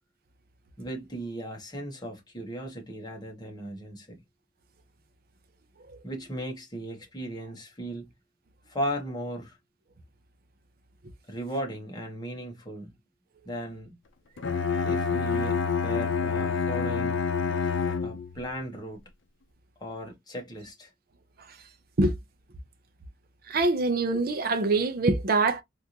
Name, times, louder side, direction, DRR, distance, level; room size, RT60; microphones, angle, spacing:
voice 1, 0.8-4.2 6.0-8.1 8.7-9.6 11.3-12.9 13.4-14.0 14.8-15.6 15.8-17.2 18.0-19.0 19.8-20.9, equal, 20° left, 1.2 m, -36 dB
Bowed string instrument, 14.4-18.4, left 5 dB, 85° left, 0.5 m, -27 dB
voice 2, 23.5-25.6, right 3 dB, 50° right, 0.6 m, -24 dB
3.5 x 2.5 x 2.8 m
head